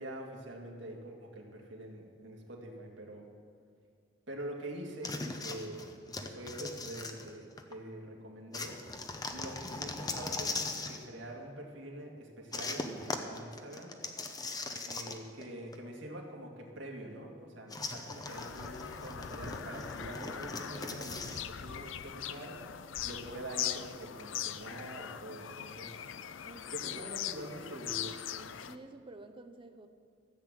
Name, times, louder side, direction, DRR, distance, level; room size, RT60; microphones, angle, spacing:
voice 1, 0.0-3.3 4.3-8.8 9.3-14.0 14.8-22.6 23.0-26.0 26.7-28.6, right 1 dB, 75° right, 0 dB, 2.1 m, -45 dB
sound 1, 5.0-7.7 8.5-11.0 12.5-15.5 15.7-15.8 17.7-21.5, left 3 dB, 20° left, 0.8 m, -40 dB
Bird vocalization bird call bird song, 18.3-28.8, left 10 dB, 90° left, 0.5 m, -41 dB
voice 2, 26.4-27.2 28.7-29.9, right 2 dB, 25° right, 8 dB, 0.7 m, -51 dB
14.0 x 8.0 x 7.5 m, 2.2 s
head